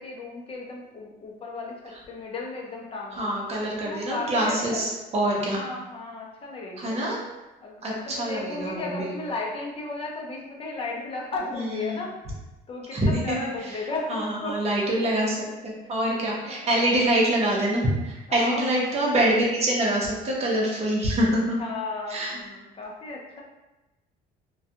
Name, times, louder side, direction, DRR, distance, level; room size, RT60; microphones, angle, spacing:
voice 1, 0.0-3.4 3.8-4.9 5.5-7.0 7.6-12.1 12.7-14.6 15.0-15.3 16.4-17.0 18.3-19.1 21.6-23.4, left 3 dB, 35° left, -1 dB, 0.6 m, -35 dB
voice 2, 3.2-5.6 6.8-7.2 7.8-9.1 11.5-12.0 12.9-13.4 14.1-15.4 15.6-21.6 22.1-22.4, right 1 dB, 40° right, -3 dB, 0.8 m, -25 dB
2.3 x 2.2 x 2.7 m, 1.0 s
cardioid pair, 110°, 17 cm